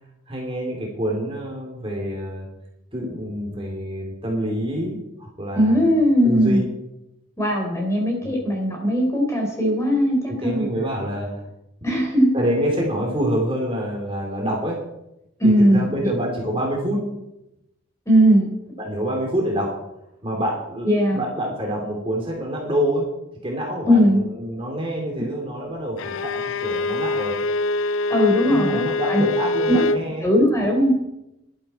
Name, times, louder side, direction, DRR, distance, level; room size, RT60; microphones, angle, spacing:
voice 1, 0.3-2.5 2.9-5.9 6.2-6.6 8.2-8.3 10.3-11.4 11.8-12.0 12.3-14.8 15.4-17.0 18.8-19.7 20.2-23.1 23.4-27.3 28.4-30.3, equal, 25° right, -1 dB, 3.0 m, -27 dB
voice 2, 5.6-6.6 7.4-10.7 11.8-12.3 15.4-15.9 18.1-18.5 20.8-21.2 23.8-24.2 28.1-29.2 29.7-29.8 30.2-30.9, equal, 15° left, 0 dB, 4.1 m, -18 dB
Bowed string instrument, 26.0-30.1, left 2 dB, 80° left, 0.5 m, -24 dB
17.0 x 12.0 x 4.4 m, 0.87 s
head